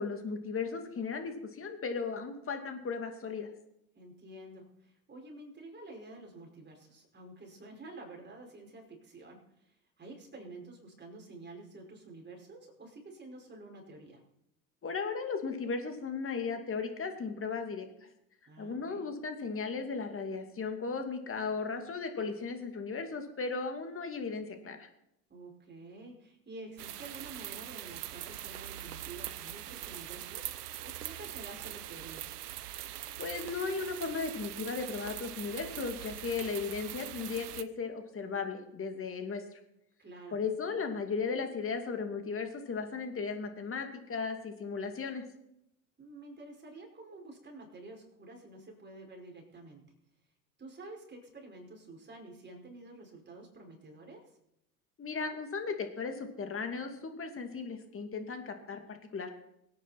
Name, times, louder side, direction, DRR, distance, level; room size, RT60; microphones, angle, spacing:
voice 1, 0.0-3.5 14.8-17.9 18.6-24.9 33.2-39.6 40.3-45.2 55.0-59.3, left 5 dB, 30° left, 5 dB, 2.5 m, -36 dB
voice 2, 3.9-14.2 18.5-19.0 25.3-32.3 40.0-40.4 46.0-49.9 50.6-54.4, right 2 dB, 25° right, 0 dB, 5.2 m, -49 dB
sound 1, 26.8-37.6, right 12 dB, 85° right, 0.7 m, -42 dB
23.5 x 9.4 x 4.3 m, 0.80 s
hypercardioid pair, 80°, 45 cm